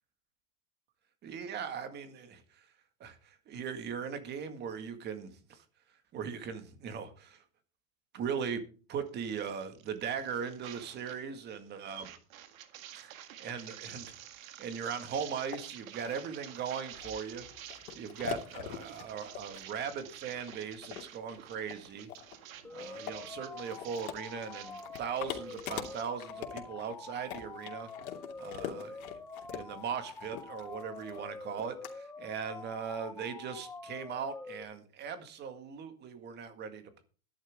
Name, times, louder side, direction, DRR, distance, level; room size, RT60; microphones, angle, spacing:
voice 1, 1.2-2.7 3.0-5.6 6.1-7.4 8.1-8.6 8.9-12.1 12.9-17.4 17.9-22.1 22.7-27.9 28.4-29.2 29.5-37.0, right 7 dB, 25° right, 8 dB, 1.9 m, -39 dB
sound 1, 9.2-11.2 11.5-26.0, right 11 dB, 65° right, 1.9 m, -50 dB
sound 2, 15.5-15.6 16.0-31.9, left 11 dB, 70° left, 2.9 m, -44 dB
sound 3, 22.6-34.6, left 3 dB, 5° left, 0.9 m, -46 dB
12.5 x 11.5 x 3.7 m, 0.38 s
supercardioid pair, 155°, 44 cm